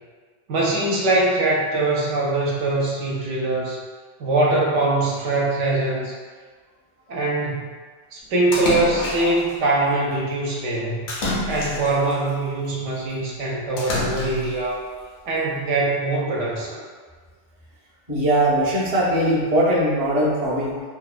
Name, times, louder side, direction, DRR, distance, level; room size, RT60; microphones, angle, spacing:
voice 1, 0.5-3.8 4.2-6.1 7.1-7.7 8.1-11.0 11.5-14.9 15.3-16.8, right 2 dB, 75° right, -3 dB, 0.9 m, -22 dB
Splash splatter, 8.5-9.5 11.1-12.1 13.8-14.6, left 1 dB, 60° left, 0.6 m, -27 dB
voice 2, 18.1-20.8, right 1 dB, 35° right, -7 dB, 0.3 m, -20 dB
2.8 x 2.1 x 2.3 m, 1.5 s
omnidirectional pair, 1.3 m